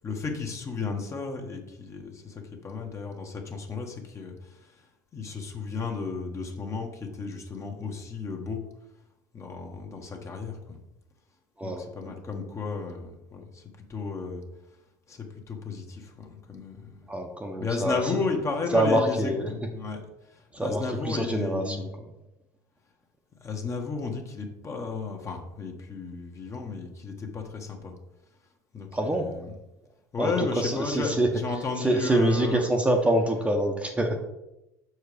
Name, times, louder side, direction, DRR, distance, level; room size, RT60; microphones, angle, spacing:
voice 1, 0.0-4.7 5.1-8.6 9.3-10.8 11.6-13.6 13.9-14.4 15.1-17.0 17.6-20.0 20.6-21.9 23.4-27.9 28.7-29.6 30.1-32.6 33.1-33.3 34.2-34.3, left 4 dB, 30° left, 2 dB, 1.5 m, -33 dB
voice 2, 17.1-18.2 18.7-19.5 20.5-21.9 28.9-29.3 30.2-31.3 31.8-34.2, right 1 dB, 15° right, 3 dB, 1.0 m, -25 dB
6.4 x 4.6 x 5.1 m, 0.93 s
hypercardioid pair, 70°, 9 cm